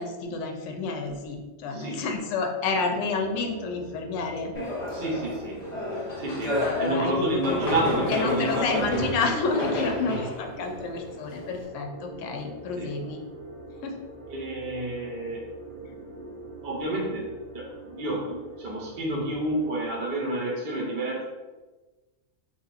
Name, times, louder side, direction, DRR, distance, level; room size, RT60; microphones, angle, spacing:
voice 1, 0.0-4.5 6.6-7.6 8.1-13.2 13.8-14.0, left 4 dB, 70° left, 4 dB, 0.8 m, -29 dB
voice 2, 1.7-2.0 4.9-5.6 6.2-9.1 10.1-10.2 12.8-12.9 14.3-15.4 15.7-16.4 16.6-21.2, right 1 dB, 50° right, -3 dB, 0.9 m, -30 dB
sound 1, 2.7-19.9, right 2 dB, 80° right, 1.1 m, -44 dB
sound 2, 4.5-11.6, left 1 dB, 40° left, 0.7 m, -31 dB
3.7 x 2.8 x 2.4 m, 1.2 s
omnidirectional pair, 1.5 m